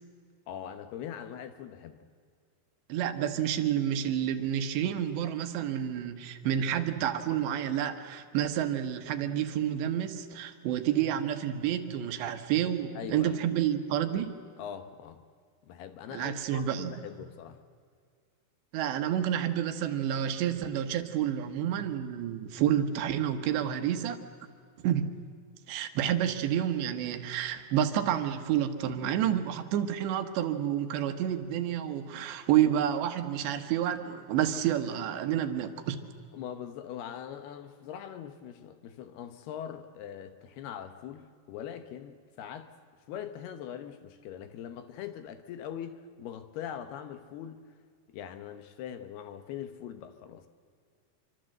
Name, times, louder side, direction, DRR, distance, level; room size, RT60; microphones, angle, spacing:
voice 1, 0.5-2.1 12.9-13.4 14.6-15.2 15.6-17.6 36.3-42.7 43.1-47.6 48.1-50.5, left 9 dB, 70° left, 2.8 m, -42 dB
voice 2, 2.9-14.3 16.1-16.9 18.7-24.2 24.8-25.2 25.7-36.0, right 10 dB, 75° right, 3.5 m, -29 dB
27.0 x 25.0 x 7.8 m
omnidirectional pair, 5.2 m